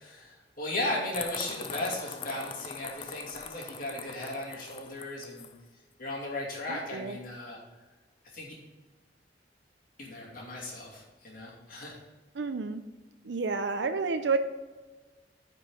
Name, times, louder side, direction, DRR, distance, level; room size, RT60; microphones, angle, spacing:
voice 1, 0.0-5.5 6.0-7.6 8.3-8.5 10.0-12.0, left 1 dB, 50° left, -3 dB, 2.7 m, -36 dB
sound 1, 1.1-5.5, left 7 dB, 30° left, 0.4 m, -42 dB
voice 2, 6.7-7.2 12.3-12.8 13.2-14.4, right 4 dB, 75° right, 8 dB, 0.5 m, -30 dB
9.5 x 5.4 x 5.3 m, 1.2 s
head